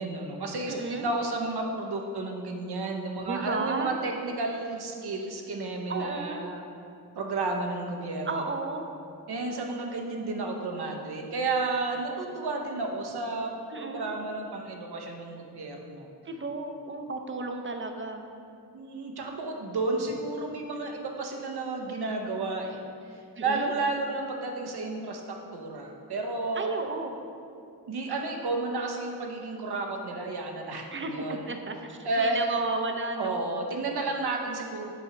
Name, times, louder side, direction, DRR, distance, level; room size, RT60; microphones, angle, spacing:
voice 1, 0.0-6.6 7.1-8.5 9.3-13.5 13.8-16.1 18.7-22.8 23.1-26.7 27.9-31.5 32.0-32.4 33.2-34.9, right 3 dB, 75° right, 2 dB, 0.8 m, -32 dB
voice 2, 0.7-1.1 3.3-3.9 5.9-6.5 8.3-8.9 13.7-14.1 16.3-18.3 23.4-23.7 26.6-27.2 30.9-33.4, right 3 dB, 30° right, 4 dB, 0.6 m, -33 dB
7.0 x 4.7 x 2.9 m, 2.6 s
cardioid pair, 60°, 39 cm